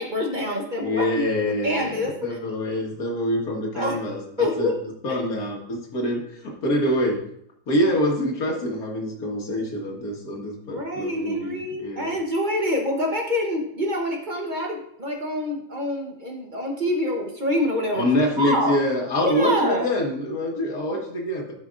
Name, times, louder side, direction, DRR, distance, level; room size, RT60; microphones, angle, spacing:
voice 1, 0.0-1.2 1.6-2.4 3.7-4.0 4.4-4.8 5.1-5.2 10.7-18.1 18.4-18.8 19.2-19.9, left 1 dB, 35° right, 1 dB, 1.0 m, -26 dB
voice 2, 0.8-4.2 4.6-4.7 5.0-7.2 7.7-12.1 17.9-21.5, left 1 dB, 80° left, 0 dB, 1.9 m, -25 dB
12.5 x 5.7 x 2.5 m, 0.68 s
omnidirectional pair, 1.5 m